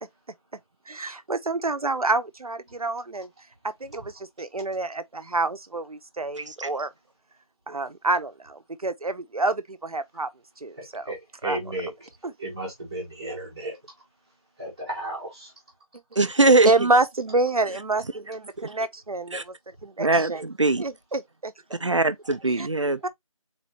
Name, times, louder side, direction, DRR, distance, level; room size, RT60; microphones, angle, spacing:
voice 1, 0.9-3.3 3.6-6.9 7.7-10.3 10.6-11.1 11.4-11.6 12.2-12.3 16.6-19.5 19.8-20.5 20.8-21.5 22.5-22.7 23.0-23.1, right 2 dB, 90° right, 0.8 m, -27 dB
voice 2, 10.8-11.9 12.4-13.8 14.6-15.5 22.3-22.4, right 1 dB, 10° right, 1.5 m, -34 dB
voice 3, 16.2-16.7 18.6-18.7 19.3-19.4 20.0-20.8 21.8-23.0, right 2 dB, 60° right, 0.5 m, -21 dB
4.1 x 4.0 x 3.0 m
figure-of-eight pair, 175°, 18 cm